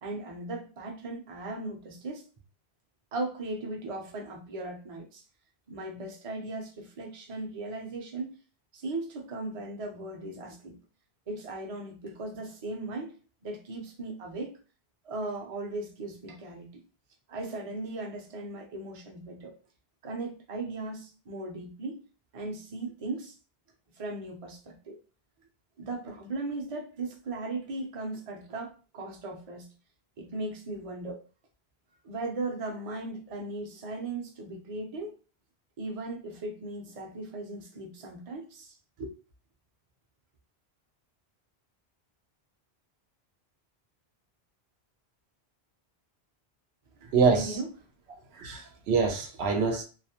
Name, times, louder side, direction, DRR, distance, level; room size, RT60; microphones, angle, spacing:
voice 1, 0.0-2.3 3.1-5.2 5.7-8.3 8.7-10.8 11.3-13.2 13.4-14.6 15.0-16.8 17.3-19.5 20.0-22.0 22.3-23.4 24.0-25.0 25.8-29.7 30.2-31.2 32.0-35.2 35.8-39.1 47.0-47.7 48.1-48.2, right 2 dB, 40° right, 0 dB, 0.6 m, -37 dB
voice 2, 47.1-47.6 48.3-49.8, right 5 dB, 85° right, 3 dB, 0.9 m, -25 dB
2.4 x 2.0 x 2.8 m, 0.36 s
omnidirectional pair, 1.1 m